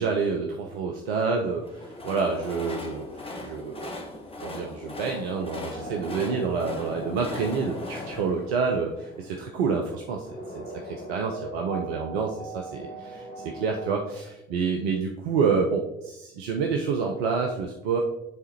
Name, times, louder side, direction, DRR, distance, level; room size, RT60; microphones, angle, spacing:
voice 1, 0.0-4.0 4.4-10.3 10.5-18.0, right 5 dB, 75° right, 2 dB, 0.6 m, -28 dB
Train, 1.5-9.6, left 2 dB, 15° left, 1.1 m, -39 dB
sound 1, 4.7-14.3, right 1 dB, 80° left, 1.6 m, -41 dB
10.5 x 3.5 x 2.9 m, 0.95 s
figure-of-eight pair, 50°, 32 cm